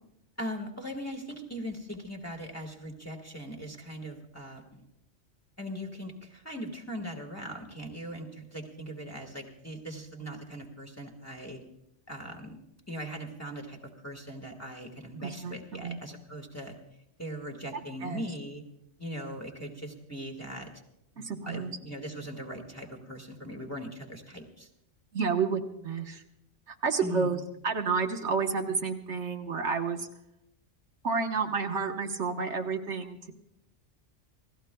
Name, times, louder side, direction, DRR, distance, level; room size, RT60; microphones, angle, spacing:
voice 1, 0.4-4.8 5.6-11.6 12.1-12.6 12.9-16.7 17.2-18.6 19.0-20.7 21.1-24.7 27.0-27.4, equal, 15° left, 0 dB, 1.7 m, -40 dB
voice 2, 15.2-16.0 18.0-18.2 21.2-21.8 25.1-26.2 26.7-30.1 31.0-33.3, right 5 dB, 75° right, 3 dB, 1.5 m, -30 dB
29.5 x 16.5 x 2.3 m, 0.82 s
omnidirectional pair, 1.2 m